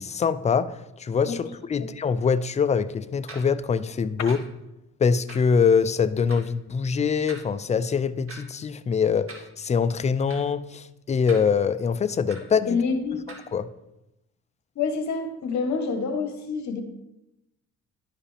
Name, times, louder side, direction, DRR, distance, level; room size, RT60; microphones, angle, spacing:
voice 1, 0.0-4.4 5.0-12.8 13.5-13.7, left 6 dB, 25° left, 13 dB, 0.4 m, -24 dB
sound 1, 3.3-3.4 4.3-4.4 5.3-5.4 6.3-6.4 7.3-7.4 8.3-8.4 9.3-9.5 10.3-10.4 11.3-11.4 12.3-12.4 13.3-13.4, right 3 dB, 45° right, 1.9 m, -41 dB
voice 2, 12.7-13.2 14.7-16.8, left 5 dB, 65° left, 6 dB, 1.2 m, -27 dB
11.0 x 5.0 x 3.4 m, 0.93 s
cardioid pair, 90°, 30 cm